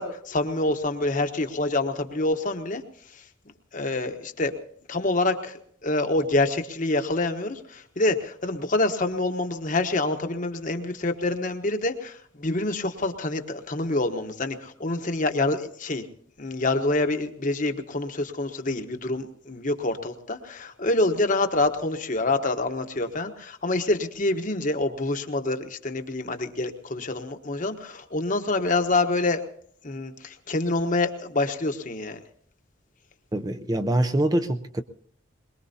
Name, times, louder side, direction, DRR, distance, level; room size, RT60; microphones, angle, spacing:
voice 1, 0.0-2.8 3.1-3.2 3.7-4.5 4.9-5.6 5.8-16.0 16.4-29.4 29.8-32.2, left 2 dB, 45° left, 6 dB, 1.1 m, -26 dB
voice 2, 33.3-34.8, right 1 dB, 20° right, 8 dB, 0.6 m, -24 dB
22.5 x 21.5 x 2.8 m, 0.62 s
head